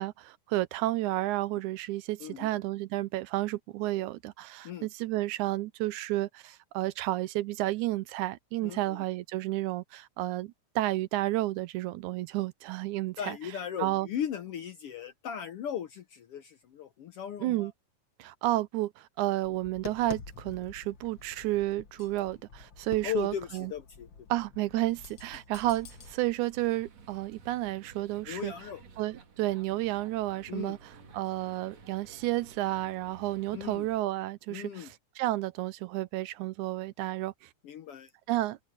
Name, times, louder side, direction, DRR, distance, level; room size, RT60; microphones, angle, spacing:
voice 1, 0.0-13.4 13.8-14.1 17.4-17.7 18.2-23.7 24.3-28.5 29.0-30.8 31.1-37.5 38.3-38.6, right 16 dB, 80° right, 2.1 m, -31 dB
voice 2, 2.2-2.6 4.6-4.9 8.6-9.0 13.2-17.7 23.0-24.3 28.3-28.8 30.5-30.8 33.5-33.9 34.5-34.9 37.6-38.1, left 9 dB, 70° left, 1.5 m, -37 dB
Tap, 19.4-26.1, left 6 dB, 45° left, 1.8 m, -48 dB
sound 1, 25.6-34.0, right 4 dB, 60° right, 3.6 m, -53 dB
open air
omnidirectional pair, 3.5 m